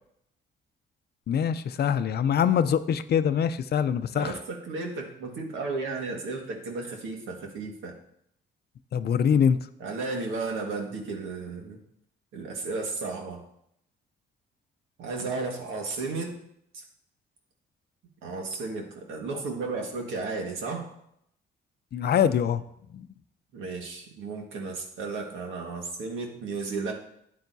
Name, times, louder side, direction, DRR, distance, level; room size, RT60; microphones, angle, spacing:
voice 1, 1.3-4.3 8.9-9.6 21.9-22.6 22.9-23.1, left 8 dB, 55° left, 12 dB, 0.6 m, -24 dB
voice 2, 4.1-7.9 9.8-11.8 12.3-13.4 15.0-16.4 16.7-16.8 18.2-20.9 23.5-26.9, right 3 dB, 85° right, 2 dB, 1.8 m, -34 dB
12.0 x 8.4 x 2.7 m, 0.74 s
cardioid pair, 90°, 20 cm